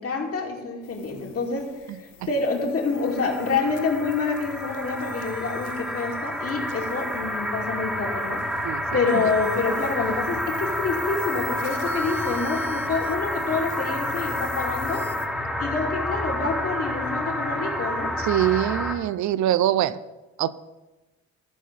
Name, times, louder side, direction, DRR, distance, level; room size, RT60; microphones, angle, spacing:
voice 1, 0.0-8.4 8.9-15.1 15.6-18.2, left 4 dB, 50° left, 0 dB, 2.6 m, -27 dB
sound 1, 0.8-15.3, left 9 dB, 85° left, 1.0 m, -45 dB
sound 2, 3.0-18.9, equal, ahead, 1.4 m, -29 dB
voice 2, 18.2-20.0 20.4-20.5, right 12 dB, 70° right, 15 dB, 0.5 m, -23 dB
14.0 x 4.7 x 7.1 m, 1.1 s
cardioid pair, 90°, 30 cm